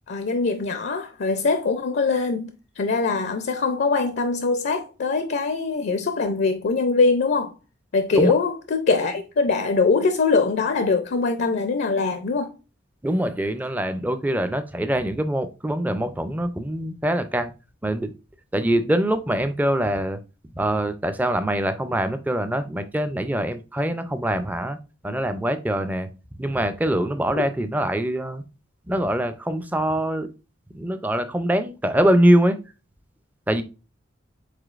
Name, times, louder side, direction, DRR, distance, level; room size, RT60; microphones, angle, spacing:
voice 1, 0.1-7.5 7.9-12.5, left 4 dB, 55° left, 0.4 m, -22 dB
voice 2, 13.0-17.5 17.8-18.1 18.5-20.2 20.6-24.8 25.0-26.1 26.4-28.4 28.9-30.3 30.7-32.6 33.5-33.6, right 1 dB, 10° right, 0.4 m, -23 dB
5.0 x 3.9 x 2.4 m
head